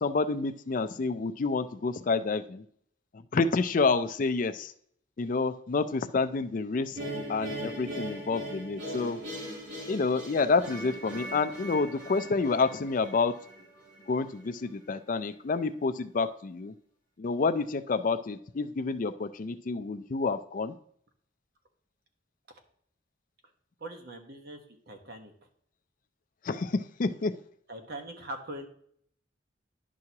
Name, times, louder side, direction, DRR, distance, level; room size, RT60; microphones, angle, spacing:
voice 1, 0.0-2.6 3.3-4.7 5.2-7.0 7.3-9.2 9.9-13.4 14.1-16.7 17.2-20.8 26.4-27.4, left 4 dB, 45° left, 11 dB, 0.4 m, -28 dB
sound 1, 7.0-14.1, right 1 dB, 85° right, 3.6 m, -39 dB
voice 2, 23.8-25.3 27.7-28.7, right 1 dB, 55° right, 4 dB, 1.2 m, -41 dB
10.5 x 6.2 x 2.8 m, 0.64 s
head